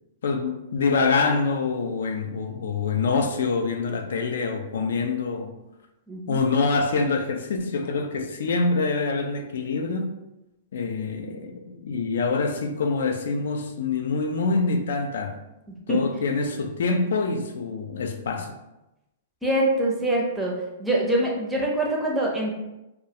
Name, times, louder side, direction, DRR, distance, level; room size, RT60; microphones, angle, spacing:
voice 1, 0.2-5.6 6.3-10.2 10.7-15.4 15.9-18.6, left 4 dB, 80° left, 0.3 m, -25 dB
voice 2, 6.1-6.4 15.9-16.0 19.4-20.5 20.8-22.5, right 1 dB, 5° right, 0.5 m, -24 dB
2.3 x 2.0 x 2.7 m
hypercardioid pair, 155°, 0 cm